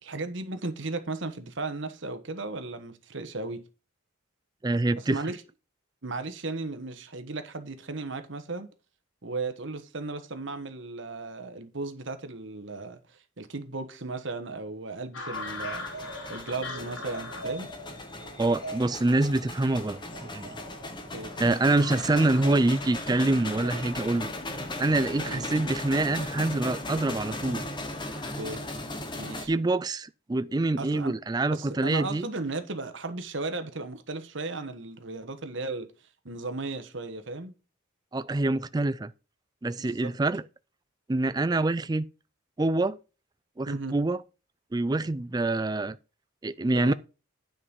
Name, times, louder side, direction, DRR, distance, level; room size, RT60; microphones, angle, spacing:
voice 1, 0.0-3.6 5.0-5.4 6.0-8.7 9.2-15.9 16.3-17.7 21.1-21.6 25.3-25.5 28.3-28.6 29.1-29.5 30.8-31.2 31.5-35.9 36.2-37.5 39.8-40.1 43.7-44.0 46.7-46.9, right 3 dB, 60° right, 1.2 m, -35 dB
voice 2, 4.6-5.2 18.4-20.6 21.4-24.3 24.8-27.7 29.5-32.3 38.1-39.1 39.6-40.4 41.1-42.1 42.6-43.0 43.6-44.2 44.7-46.0 46.4-46.9, right 2 dB, 20° right, 0.3 m, -26 dB
sound 1, 15.1-28.3, left 1 dB, 75° left, 3.5 m, -42 dB
sound 2, 15.3-29.5, left 2 dB, 20° left, 1.2 m, -37 dB
9.7 x 5.3 x 5.3 m
head